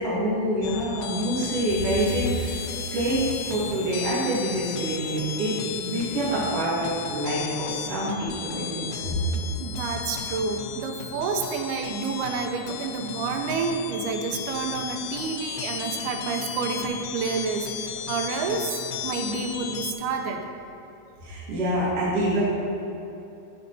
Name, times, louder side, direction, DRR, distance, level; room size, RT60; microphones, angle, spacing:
voice 1, 0.0-2.4 2.9-9.2 21.2-22.4, right 1 dB, 45° right, -9 dB, 2.3 m, -26 dB
sound 1, 0.6-19.9, left 8 dB, 80° left, 2.4 m, -35 dB
sound 2, 1.1-6.5, right 1 dB, 25° right, 1.9 m, -47 dB
voice 2, 9.6-17.7 18.1-20.5, right 5 dB, 80° right, 4 dB, 2.6 m, -29 dB
14.5 x 5.2 x 3.9 m, 2.8 s
omnidirectional pair, 4.6 m